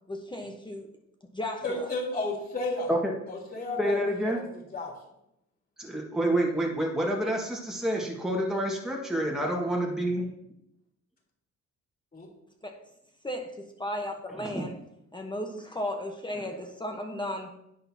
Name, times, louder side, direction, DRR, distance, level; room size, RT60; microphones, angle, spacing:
voice 1, 0.1-0.9 1.3-1.9 12.6-12.8 13.2-14.7 15.1-17.6, left 1 dB, 15° left, 3 dB, 1.1 m, -35 dB
voice 2, 1.6-2.9 3.3-4.4 4.7-4.9 12.1-12.3, left 2 dB, 30° left, -2 dB, 3.7 m, -33 dB
voice 3, 3.8-4.4 5.8-10.3 14.4-14.6 16.3-16.5, right 1 dB, ahead, -2 dB, 1.7 m, -28 dB
10.5 x 7.9 x 2.9 m, 0.82 s
cardioid pair, 90°, 30 cm